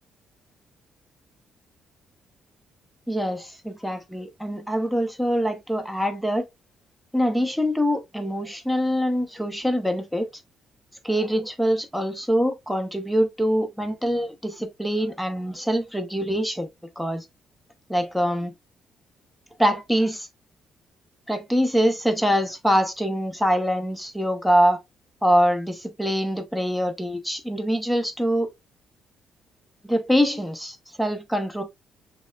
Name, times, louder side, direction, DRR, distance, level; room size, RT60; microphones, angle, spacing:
voice 1, 3.1-6.4 7.1-10.3 11.0-16.7 17.0-17.2 17.9-18.5 19.6-20.3 21.3-24.8 25.2-28.5 29.8-31.6, equal, ahead, 0.8 m, -24 dB
6.1 x 2.2 x 2.3 m
cardioid pair, 90°, 0 cm